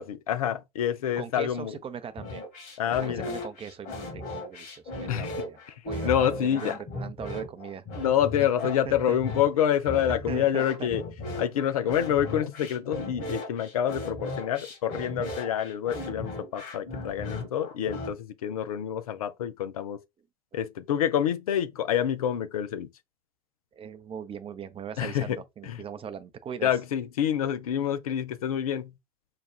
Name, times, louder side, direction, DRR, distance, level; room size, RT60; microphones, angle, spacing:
voice 1, 0.0-1.8 2.8-3.3 5.1-5.3 6.0-6.8 8.0-11.0 11.4-20.0 20.5-22.9 25.0-25.4 25.6-25.8 26.6-28.9, left 10 dB, 75° left, 0.5 m, -27 dB
voice 2, 1.2-2.5 3.0-5.6 5.9-7.8 8.8-9.4 10.3-10.9 20.5-20.6 23.7-26.7, right 7 dB, 30° right, 0.6 m, -40 dB
sound 1, 2.2-18.1, left 2 dB, 50° left, 1.6 m, -36 dB
5.7 x 2.3 x 2.3 m
figure-of-eight pair, 65°, 18 cm